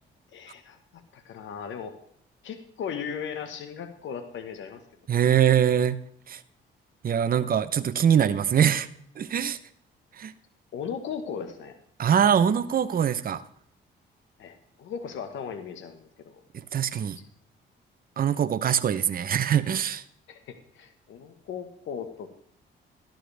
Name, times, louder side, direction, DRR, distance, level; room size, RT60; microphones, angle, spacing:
voice 1, 0.3-2.0 2.4-4.8 5.1-5.3 10.7-11.7 12.4-12.5 14.4-16.4 17.1-17.2 20.3-22.3, left 7 dB, 75° left, 8 dB, 1.4 m, -37 dB
voice 2, 5.1-6.0 6.3-6.4 7.0-8.9 9.2-9.6 10.2-10.3 12.0-13.4 16.7-17.2 18.2-20.0, right 8 dB, 45° right, 11 dB, 0.8 m, -23 dB
13.0 x 11.5 x 3.5 m, 0.67 s
cardioid pair, 90°, 20 cm